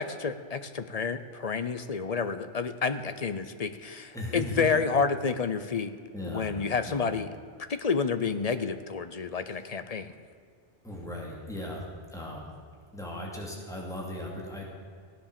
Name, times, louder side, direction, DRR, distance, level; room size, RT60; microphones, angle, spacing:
voice 1, 0.0-5.9 6.2-7.3 7.7-10.1, left 5 dB, 40° left, 11 dB, 0.7 m, -29 dB
voice 2, 4.1-4.8 6.1-6.5 6.9-7.0 9.5-9.7 10.8-11.8 12.1-12.5 12.9-14.7, left 1 dB, 5° left, -2 dB, 2.6 m, -37 dB
16.0 x 10.0 x 6.9 m, 2.1 s
omnidirectional pair, 1.2 m